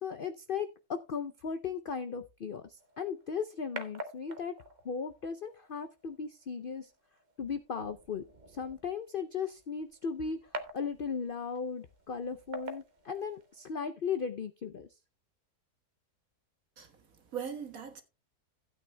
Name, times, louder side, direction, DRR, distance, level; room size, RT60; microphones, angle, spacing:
voice 1, 0.0-0.7 1.1-4.5 4.8-6.9 7.4-10.4 10.7-14.9, left 6 dB, 65° left, 0.5 m, -37 dB
sound 1, 2.8-13.8, right 1 dB, 35° right, 0.9 m, -48 dB
voice 2, 16.8-18.0, right 7 dB, 60° right, 1.9 m, -41 dB
16.0 x 8.9 x 2.2 m
omnidirectional pair, 1.7 m